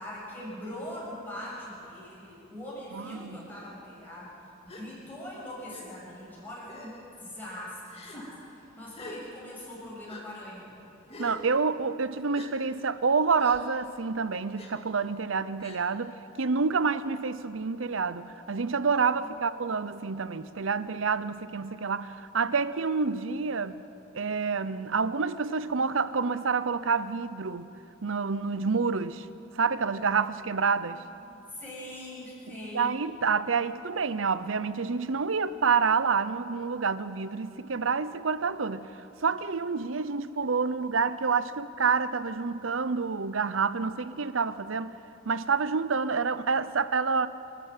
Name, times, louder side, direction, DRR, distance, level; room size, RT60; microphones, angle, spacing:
voice 1, 0.0-4.3 4.6-10.8 19.2-19.3 30.4-31.0 31.3-33.0, left 1 dB, 10° left, 7.0 m, -42 dB
voice 2, 2.9-3.4 11.2-23.8 24.1-27.7 28.0-29.3 29.5-31.0 32.7-38.9 39.2-45.0 45.3-47.3, right 5 dB, 75° right, 0.8 m, -28 dB
Gasp, 4.7-4.9 5.7-5.8 6.7-7.1 7.9-8.2 8.9-9.2 10.1-10.2 11.1-11.4 12.3-12.5 13.4-13.6 14.6-14.7 15.6-15.8, left 2 dB, 30° left, 2.6 m, -44 dB
28.0 x 12.0 x 8.9 m
head